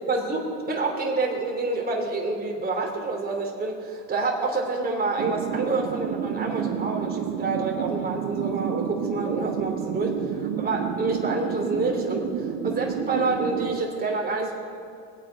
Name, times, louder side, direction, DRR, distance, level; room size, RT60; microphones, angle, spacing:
voice 1, 0.1-14.5, right 3 dB, 20° right, 1 dB, 3.1 m, -28 dB
sound 1, 5.2-13.8, right 8 dB, 40° right, 0.9 m, -30 dB
24.0 x 8.3 x 4.7 m, 2.4 s
hypercardioid pair, 100°, 48 cm